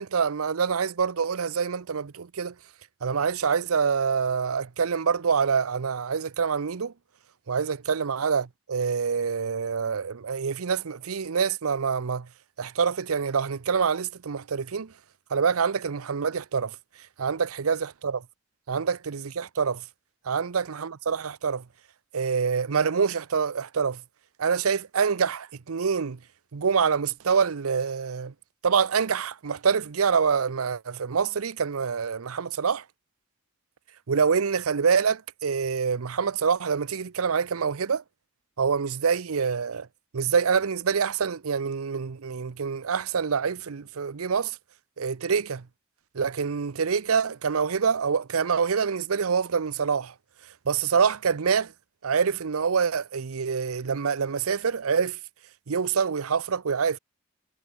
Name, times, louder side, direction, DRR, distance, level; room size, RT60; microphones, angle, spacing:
voice 1, 0.0-2.5 3.0-6.9 7.5-12.3 12.6-14.9 15.3-16.8 17.2-18.2 18.7-19.8 20.2-21.6 22.1-24.0 24.4-26.2 26.5-28.3 28.6-32.8 34.1-38.0 38.6-39.9 40.1-44.6 45.0-45.7 46.1-50.1 50.7-51.7 52.0-55.2 55.7-57.0, right 6 dB, 85° right, 0.7 m, -26 dB
head